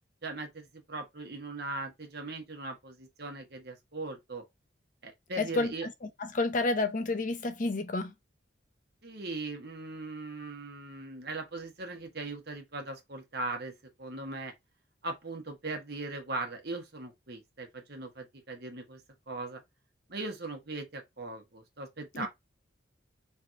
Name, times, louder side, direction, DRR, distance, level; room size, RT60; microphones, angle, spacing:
voice 1, 0.2-4.4 5.0-5.9 9.0-13.7 14.0-14.5 15.0-19.0 19.3-19.6 20.1-22.3, right 2 dB, 55° right, 1.2 m, -39 dB
voice 2, 5.4-8.1 22.1-22.3, left 2 dB, 45° left, 0.6 m, -30 dB
3.3 x 3.0 x 3.7 m
head